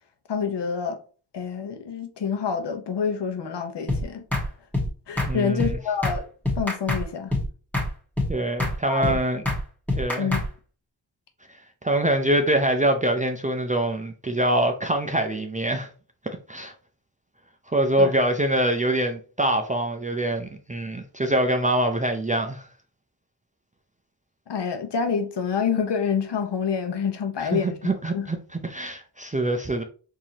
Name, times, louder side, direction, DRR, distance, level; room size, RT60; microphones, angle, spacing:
voice 1, 0.3-1.0 1.3-4.2 5.1-6.2 6.6-7.3 8.9-9.2 10.2-10.4 18.0-18.1 24.5-28.3, left 6 dB, 70° left, 0.9 m, -27 dB
sound 1, 3.9-4.0 4.3-4.5 4.7-4.9 5.2-5.3 5.6-5.7 6.0-6.2 6.5-7.0 7.3-7.5 7.7-7.9 8.2-8.3 8.6-8.8 9.0-9.2 9.5-9.6 9.9-10.5, left 2 dB, 5° left, 1.3 m, -25 dB
voice 2, 5.3-5.8 8.3-9.4 10.0-10.3 11.8-15.9 16.5-16.7 17.7-22.7 27.4-29.8, right 1 dB, 20° right, 0.5 m, -24 dB
4.6 x 2.8 x 2.8 m
cardioid pair, 70°, 44 cm